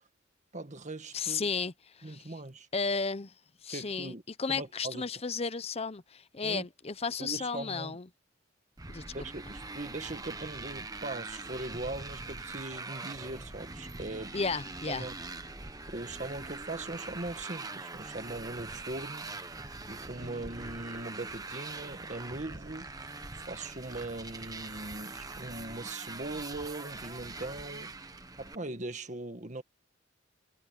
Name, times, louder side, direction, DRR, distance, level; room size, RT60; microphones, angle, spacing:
voice 1, 0.5-1.5 2.0-2.7 3.7-4.2 4.5-5.0 6.4-6.6 7.2-8.0 9.1-14.3 14.9-15.1 15.9-19.3 19.9-22.9 23.3-27.9 28.4-29.6, right 2 dB, 40° right, 1.7 m, -40 dB
voice 2, 1.1-2.3 2.7-3.3 3.6-8.1 8.9-9.0 14.3-15.1 20.2-20.4, left 4 dB, 30° left, 0.8 m, -34 dB
Motorcycle, 8.8-28.5, right 3 dB, 20° right, 1.2 m, -43 dB
head